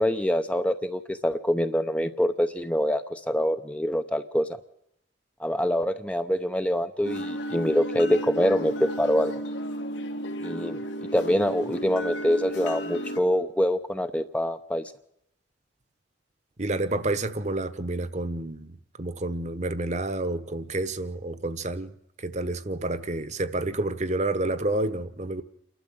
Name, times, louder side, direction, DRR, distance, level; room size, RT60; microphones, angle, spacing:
voice 1, 0.0-4.6 5.4-9.3 10.4-10.8 11.1-14.9, equal, 5° left, 0.7 m, -25 dB
sound 1, 7.0-13.2, equal, 85° left, 2.1 m, -33 dB
voice 2, 16.6-25.4, right 2 dB, 40° right, 1.1 m, -29 dB
28.5 x 12.5 x 7.8 m
head